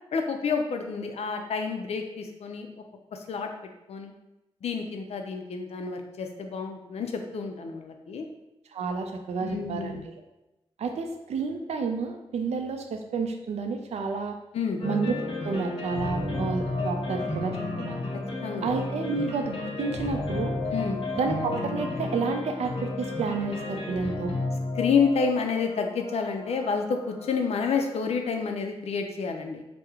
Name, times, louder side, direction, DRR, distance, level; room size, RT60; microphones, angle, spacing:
voice 1, 0.1-2.7 3.3-3.5 3.9-4.1 4.6-8.2 9.4-10.0 14.5-14.8 18.4-18.7 20.7-21.0 24.8-29.6, left 5 dB, 75° left, 5 dB, 0.4 m, -29 dB
voice 2, 8.7-10.0 10.8-14.4 14.8-15.1 15.5-18.0 18.6-20.6 21.1-24.3, right 4 dB, 90° right, 5 dB, 0.4 m, -30 dB
sound 1, 14.8-27.7, left 2 dB, 60° left, 0.9 m, -32 dB
2.9 x 2.0 x 3.5 m, 0.96 s
wide cardioid pair, 85°, 11 cm